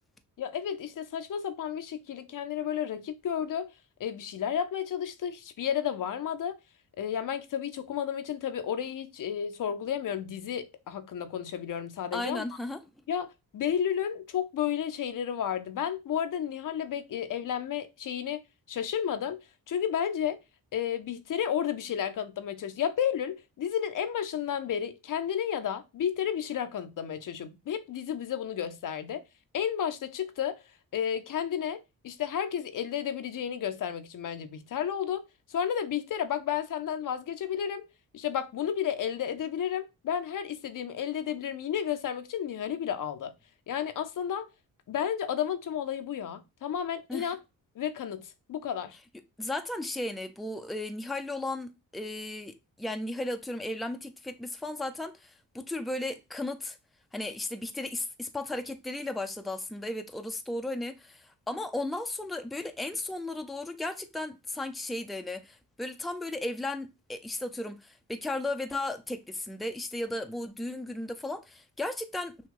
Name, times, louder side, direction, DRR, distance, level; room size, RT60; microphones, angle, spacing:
voice 1, 0.4-3.7 4.0-6.6 7.0-12.4 13.1-18.4 18.7-19.4 19.7-20.4 20.7-29.2 29.5-30.6 30.9-37.9 38.1-43.3 43.7-44.5 44.9-47.4 47.8-49.0, left 9 dB, 65° left, 0.7 m, -32 dB
voice 2, 12.1-12.8 47.1-47.3 49.4-56.8 57.1-72.5, left 2 dB, ahead, 0.5 m, -35 dB
6.2 x 2.3 x 3.7 m
cardioid pair, 95°, 34 cm